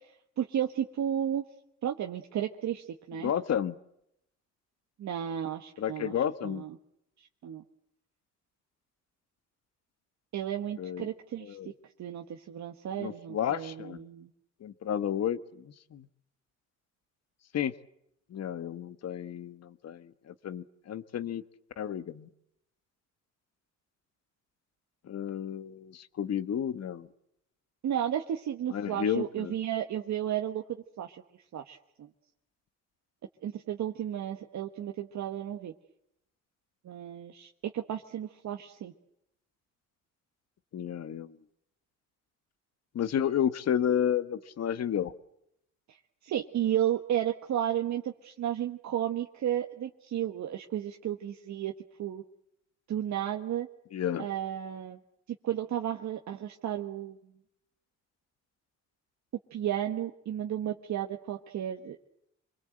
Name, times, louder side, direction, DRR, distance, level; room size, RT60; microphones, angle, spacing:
voice 1, 0.4-1.4 1.8-3.3 5.0-6.1 6.4-6.8 7.4-7.6 10.3-11.6 12.0-14.3 27.8-30.6 31.0-31.2 31.5-31.8 33.4-35.7 36.8-38.9 45.9-46.0 46.2-51.7 52.0-52.2 52.9-53.7 54.2-55.0 55.4-57.2 59.5-62.0, right 10 dB, 65° right, 3 dB, 1.5 m, -33 dB
voice 2, 3.2-3.8 5.8-6.6 10.8-11.1 11.4-11.7 13.0-14.0 14.6-16.1 17.5-17.7 18.3-21.4 21.8-22.3 25.1-27.1 28.7-29.5 40.7-41.4 42.9-45.1 53.9-54.3, left 9 dB, 55° left, 13 dB, 1.3 m, -31 dB
26.0 x 23.0 x 7.9 m, 0.79 s
cardioid pair, 90°, 30 cm